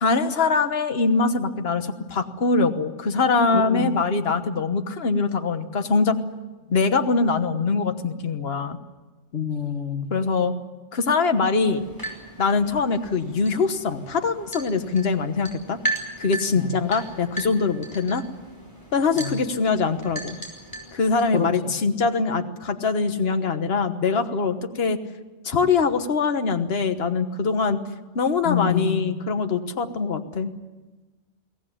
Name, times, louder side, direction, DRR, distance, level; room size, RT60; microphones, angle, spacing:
voice 1, 0.0-6.1 6.7-8.8 10.1-10.5 10.9-11.8 12.4-15.8 16.2-18.2 18.9-20.4 20.9-25.0 25.4-27.8 28.1-30.5, left 4 dB, 55° left, 8 dB, 1.5 m, -23 dB
voice 2, 3.5-4.0 9.3-10.1 16.6-16.7 19.2-19.4 21.3-21.7 28.4-29.2, left 8 dB, 70° left, 7 dB, 1.5 m, -27 dB
sound 1, 11.6-21.4, right 2 dB, 15° left, 5.1 m, -36 dB
23.5 x 17.0 x 10.0 m, 1.2 s
omnidirectional pair, 1.2 m